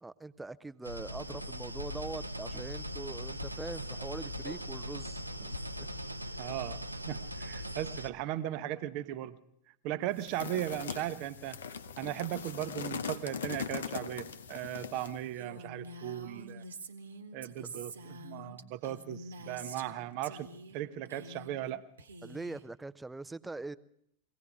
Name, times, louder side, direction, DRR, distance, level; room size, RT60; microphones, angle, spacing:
voice 1, 0.0-5.9 17.6-17.9 22.2-23.8, right 3 dB, 10° right, 14 dB, 0.5 m, -43 dB
sound 1, 0.8-8.1, equal, 85° right, 0.6 m, -40 dB
voice 2, 6.4-9.4 9.8-11.6 12.0-16.6 17.3-21.8, right 13 dB, 45° right, 11 dB, 0.7 m, -37 dB
sound 2, 10.2-15.2, left 7 dB, 65° left, 0.7 m, -40 dB
Female speech woman speaking, 15.3-19.9 20.2-20.8 21.0-21.7 22.0-22.6, right 2 dB, 70° right, 1.1 m, -47 dB
23.0 x 17.0 x 3.6 m, 0.72 s
figure-of-eight pair, 90°, 0 cm